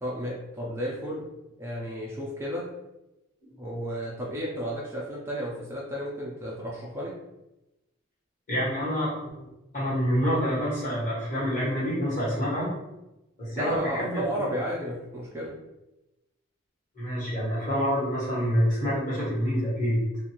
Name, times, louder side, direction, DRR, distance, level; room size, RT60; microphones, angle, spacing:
voice 1, 0.0-1.2 1.6-2.7 3.6-7.2 13.5-15.6, equal, 15° right, -4 dB, 0.4 m, -33 dB
voice 2, 8.5-9.5 9.7-12.7 13.4-14.5 16.9-20.1, equal, 45° left, -8 dB, 1.4 m, -27 dB
2.5 x 2.4 x 2.8 m, 0.96 s
head